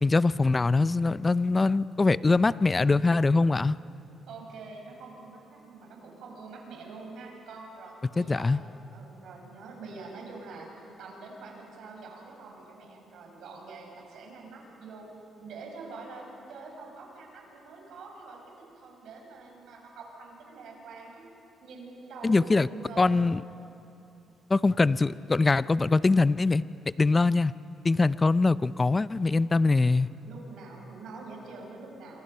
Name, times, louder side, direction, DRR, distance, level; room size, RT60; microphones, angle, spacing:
voice 1, 0.0-3.8 8.2-8.6 22.2-22.7 23.0-23.4 24.5-26.6 27.0-27.5 27.8-30.1, left 3 dB, 25° left, 17 dB, 0.5 m, -23 dB
voice 2, 4.3-8.6 8.9-10.7 11.0-15.1 15.4-21.2 21.6-23.2 29.9-32.2, right 3 dB, 75° right, 0 dB, 6.3 m, -45 dB
28.0 x 25.5 x 5.6 m, 2.8 s
cardioid pair, 90°, 0 cm